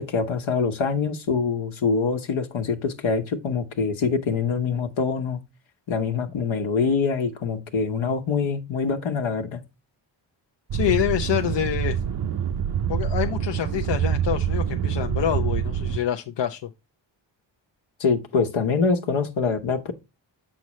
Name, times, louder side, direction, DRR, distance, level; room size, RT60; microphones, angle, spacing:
voice 1, 0.0-5.4 5.9-9.6 18.0-19.9, left 5 dB, 80° left, 1.3 m, -24 dB
voice 2, 10.7-12.0 12.9-16.7, left 11 dB, 65° left, 0.7 m, -26 dB
sound 1, 10.7-16.0, right 9 dB, 55° right, 0.6 m, -26 dB
7.4 x 6.1 x 3.1 m
wide cardioid pair, 105°, 46 cm